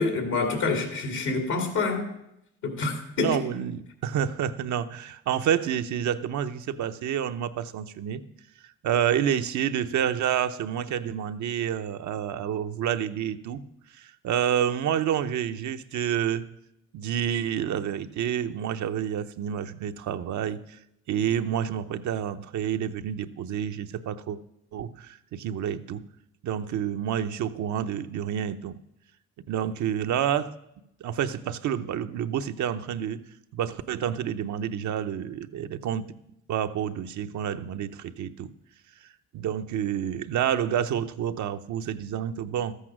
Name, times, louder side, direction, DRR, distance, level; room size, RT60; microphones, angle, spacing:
voice 1, 0.0-2.1 2.6-3.3, left 3 dB, 85° left, 3 dB, 2.4 m, -27 dB
voice 2, 3.2-8.2 8.8-13.6 13.9-16.5 16.9-20.8 21.1-24.4 24.7-26.0 26.4-28.7 29.5-30.5 31.0-33.2 33.5-36.1 36.5-38.5 39.3-42.7, right 9 dB, 80° right, 9 dB, 0.7 m, -29 dB
13.0 x 8.3 x 6.1 m, 0.82 s
cardioid pair, 70°, 29 cm